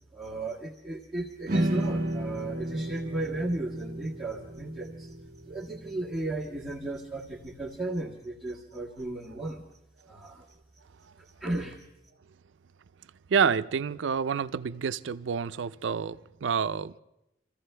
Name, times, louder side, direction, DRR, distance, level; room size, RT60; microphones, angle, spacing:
voice 1, 0.1-5.2 5.5-9.6 10.1-10.5 11.2-11.9, right 2 dB, ahead, -6 dB, 1.6 m, -35 dB
sound 1, 1.5-7.7, right 1 dB, 50° right, 1.4 m, -34 dB
voice 2, 13.3-17.0, right 6 dB, 80° right, 15 dB, 0.4 m, -28 dB
26.0 x 15.0 x 3.3 m, 0.89 s
head